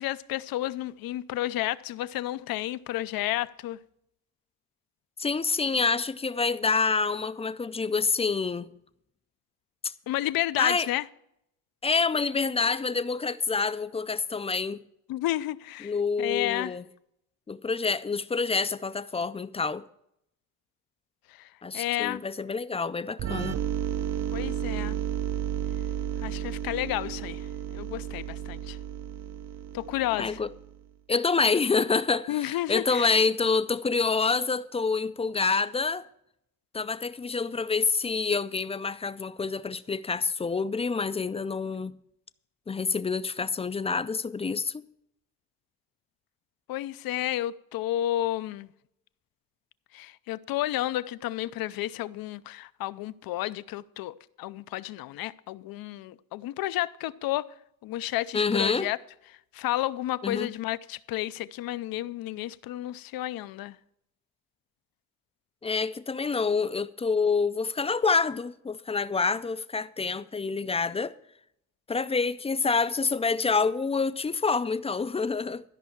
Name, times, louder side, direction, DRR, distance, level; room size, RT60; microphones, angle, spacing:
voice 1, 0.0-3.8 10.1-11.0 15.1-15.9 16.2-16.8 21.3-21.5 21.7-22.2 24.3-25.0 26.2-27.5 27.7-28.8 29.7-30.4 32.3-33.1 46.7-48.7 49.9-57.5 57.8-59.0 59.5-63.8, left 14 dB, 75° left, 0.6 m, -31 dB
voice 2, 5.2-8.7 9.8-9.9 10.6-10.9 11.8-14.8 15.8-16.8 17.5-19.8 21.6-23.6 30.2-30.5 31.1-36.0 36.7-41.9 42.7-44.8 58.3-58.9 60.2-60.5 65.6-71.1 71.9-75.6, left 4 dB, 20° left, 0.4 m, -27 dB
sound 1, 23.2-30.8, right 10 dB, 45° right, 0.7 m, -33 dB
13.0 x 5.5 x 7.2 m
cardioid pair, 105°, 36 cm